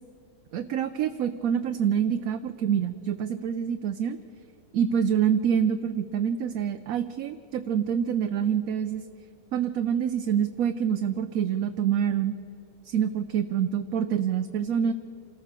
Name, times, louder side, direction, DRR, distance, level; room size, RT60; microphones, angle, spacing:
voice 1, 0.5-4.2 4.7-9.0 9.5-12.3 12.8-14.9, right 8 dB, 70° right, 9 dB, 1.0 m, -26 dB
27.0 x 14.0 x 6.7 m, 2.7 s
omnidirectional pair, 1.6 m